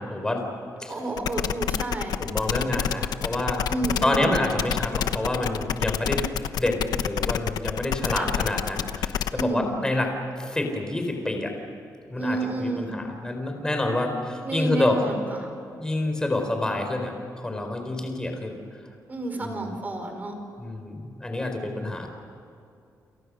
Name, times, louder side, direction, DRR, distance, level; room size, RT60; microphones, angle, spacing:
voice 1, 0.1-0.4 0.8-0.9 2.2-3.7 4.0-6.2 6.6-11.5 12.1-15.0 15.8-18.6 19.4-19.7 20.6-22.1, left 1 dB, 10° left, 4 dB, 4.3 m, -28 dB
voice 2, 0.9-2.2 3.7-4.3 8.1-8.4 9.3-9.7 12.2-12.9 14.4-15.5 19.1-20.3, right 2 dB, 25° right, 5 dB, 4.7 m, -30 dB
sound 1, 1.2-9.4, left 9 dB, 85° left, 1.0 m, -27 dB
30.0 x 28.5 x 6.4 m, 2.6 s
wide cardioid pair, 165°, 7 cm